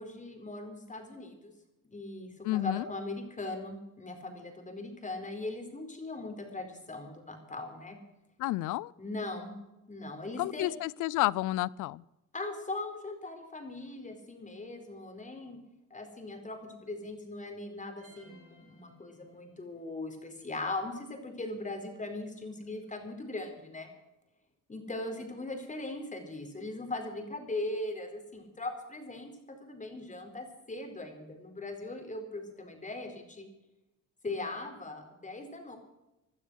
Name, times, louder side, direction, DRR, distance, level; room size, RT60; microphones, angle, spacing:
voice 1, 0.0-1.5 1.8-8.0 9.0-9.5 9.9-10.7 12.3-15.6 15.9-23.9 24.7-33.5 34.2-35.8, left 2 dB, 25° left, 5 dB, 4.5 m, -39 dB
voice 2, 2.4-2.9 8.4-8.9 10.4-12.0, left 17 dB, 90° left, 23 dB, 0.5 m, -30 dB
sound 1, 18.0-19.8, right 1 dB, 50° right, 7.0 m, -60 dB
17.0 x 12.0 x 6.4 m, 0.96 s
cardioid pair, 90°, 30 cm